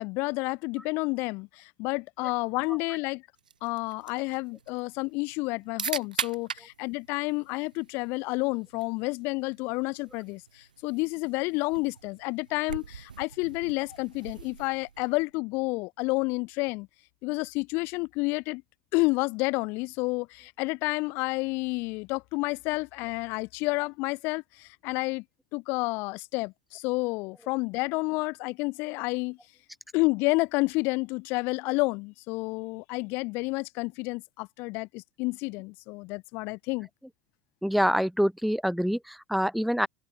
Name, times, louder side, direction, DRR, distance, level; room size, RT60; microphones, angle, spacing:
voice 1, 0.0-3.2 3.6-16.9 17.2-18.6 18.9-25.2 25.5-29.4 29.9-36.9, left 26 dB, 55° left, 0.9 m, -30 dB
sound 1, 3.4-15.3, right 7 dB, 85° right, 4.5 m, -41 dB
voice 2, 37.6-39.9, equal, ahead, 0.5 m, -26 dB
figure-of-eight pair, 70°, 4 cm